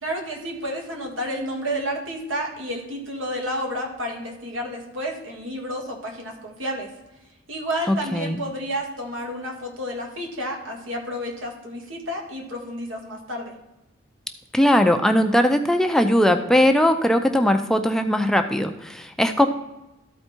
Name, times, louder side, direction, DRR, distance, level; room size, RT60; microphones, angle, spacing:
voice 1, 0.0-6.9 7.5-13.5, equal, 85° right, 0 dB, 2.0 m, -30 dB
voice 2, 7.9-8.4 14.5-19.5, equal, ahead, 6 dB, 0.4 m, -19 dB
13.0 x 4.5 x 4.4 m, 0.96 s
head